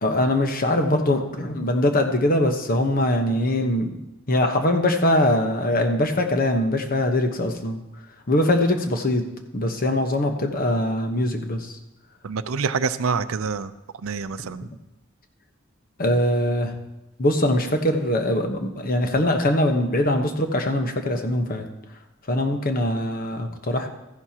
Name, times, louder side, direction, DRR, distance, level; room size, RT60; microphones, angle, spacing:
voice 1, 0.0-4.0 4.3-7.8 8.3-9.2 9.5-11.8 16.0-16.7 17.2-21.7 22.3-23.9, left 1 dB, 45° left, 5 dB, 1.1 m, -22 dB
voice 2, 12.2-13.7 14.0-14.7, right 5 dB, 85° right, 13 dB, 0.5 m, -26 dB
14.0 x 11.0 x 2.9 m, 0.94 s
head